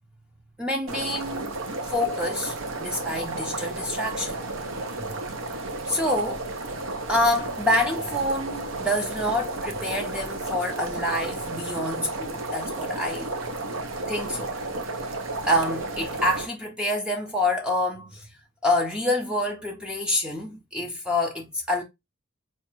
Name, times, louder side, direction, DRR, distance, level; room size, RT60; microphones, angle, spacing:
voice 1, 0.6-1.5 1.9-4.4 5.0-5.1 5.9-6.6 7.1-13.3 14.1-14.5 15.0-18.3 18.6-21.8, left 1 dB, 5° right, 0.5 m, -27 dB
sound 1, 0.9-16.5, right 2 dB, 70° right, 0.7 m, -33 dB
4.3 x 2.4 x 2.9 m
head